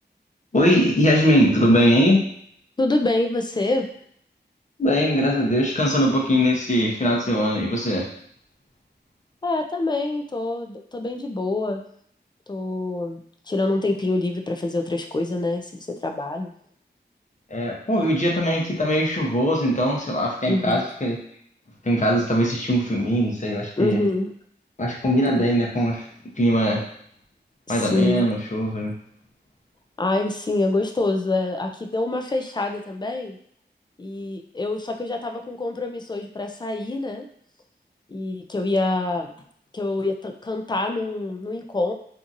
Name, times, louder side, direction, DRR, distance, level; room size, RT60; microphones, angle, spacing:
voice 1, 0.5-2.3 4.8-8.1 17.5-21.2 21.8-24.0 24.8-26.0 26.4-26.9 27.7-28.9, equal, 40° left, -2 dB, 0.8 m, -21 dB
voice 2, 2.8-3.9 9.4-11.8 12.5-13.2 13.5-16.5 20.5-20.8 23.8-24.3 25.4-25.5 27.7-28.3 30.0-33.4 34.0-37.2 38.1-39.3 39.7-41.9, left 2 dB, 25° left, 4 dB, 0.4 m, -25 dB
2.7 x 2.6 x 2.5 m, 0.65 s
wide cardioid pair, 70°, 19 cm